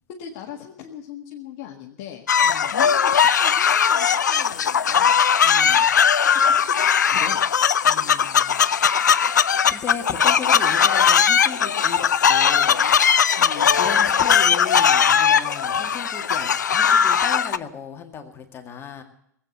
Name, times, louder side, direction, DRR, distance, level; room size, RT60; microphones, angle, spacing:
voice 1, 0.1-2.2 2.5-5.2 6.4-7.5 13.4-13.7, left 8 dB, 45° left, 0 dB, 1.7 m, -39 dB
sound 1, 2.3-17.6, left 7 dB, 75° left, 0.6 m, -19 dB
voice 2, 2.4-2.7 5.4-5.9 7.8-8.7 9.3-12.8 13.8-19.0, left 6 dB, 25° left, 5 dB, 2.0 m, -36 dB
19.0 x 8.7 x 8.0 m, 0.71 s
figure-of-eight pair, 100°, 10 cm